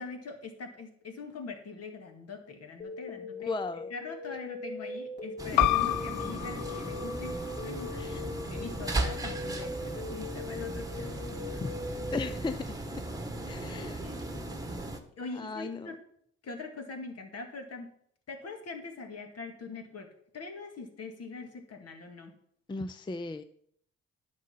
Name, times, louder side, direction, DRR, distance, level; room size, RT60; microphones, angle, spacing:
voice 1, 0.0-3.5 3.9-7.4 7.6-11.8 13.4-16.0 16.4-17.9 18.3-20.1 20.3-22.3, left 4 dB, 55° left, 4 dB, 2.0 m, -43 dB
sound 1, 2.8-12.4, left 3 dB, 35° left, 3.0 m, -41 dB
voice 2, 3.2-3.9 5.5-5.9 8.0-8.2 11.6-11.7 12.1-12.7 12.9-13.0 13.5-14.0 15.3-15.9 22.7-23.4, left 3 dB, 15° left, 11 dB, 0.5 m, -36 dB
sound 2, 5.4-15.0, right 2 dB, 10° right, 1.3 m, -36 dB
sound 3, 5.6-10.7, left 14 dB, 80° left, 0.5 m, -33 dB
9.6 x 6.5 x 5.6 m, 0.66 s
cardioid pair, 90°, 30 cm